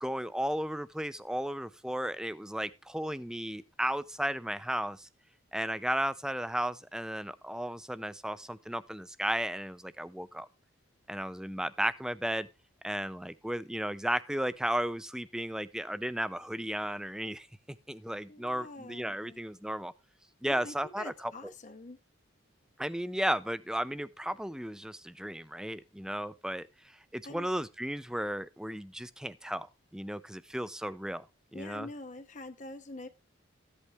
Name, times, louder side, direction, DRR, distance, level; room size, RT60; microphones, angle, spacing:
voice 1, 0.0-5.1 5.5-10.5 11.1-12.5 12.8-17.5 17.9-19.9 20.4-21.5 22.8-29.7 29.9-31.3 31.5-31.9, right 1 dB, 5° right, 0.4 m, -34 dB
voice 2, 18.3-19.4 20.5-22.0 27.2-27.5 31.5-33.1, left 2 dB, 35° left, 0.7 m, -45 dB
14.0 x 8.3 x 3.4 m
head